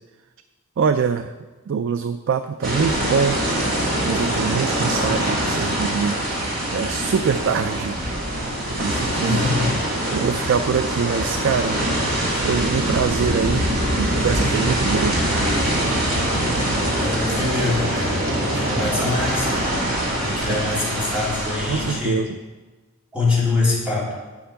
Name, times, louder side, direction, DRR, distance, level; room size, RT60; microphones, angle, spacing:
voice 1, 0.8-1.3 1.7-3.4 4.0-6.2 6.7-8.0 8.8-9.4 10.1-11.8 12.4-13.7 14.0-15.2 20.5-20.6 21.7-22.4, right 6 dB, 60° right, 10 dB, 0.3 m, -23 dB
sound 1, 2.6-21.9, right 1 dB, 40° right, 2.5 m, -23 dB
voice 2, 9.2-9.8 16.9-19.5 20.2-22.3 23.1-24.1, left 3 dB, 5° right, -8 dB, 2.9 m, -24 dB
10.0 x 5.2 x 5.7 m, 1.3 s
head